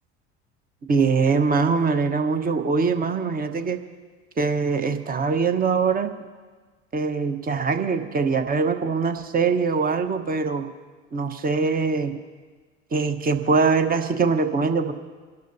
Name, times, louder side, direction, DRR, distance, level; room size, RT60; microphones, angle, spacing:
voice 1, 0.9-3.8 4.4-6.1 6.9-10.7 11.1-12.1 12.9-14.9, right 4 dB, 25° right, 7 dB, 1.1 m, -22 dB
28.0 x 12.0 x 2.7 m, 1.4 s
figure-of-eight pair, 70°, 36 cm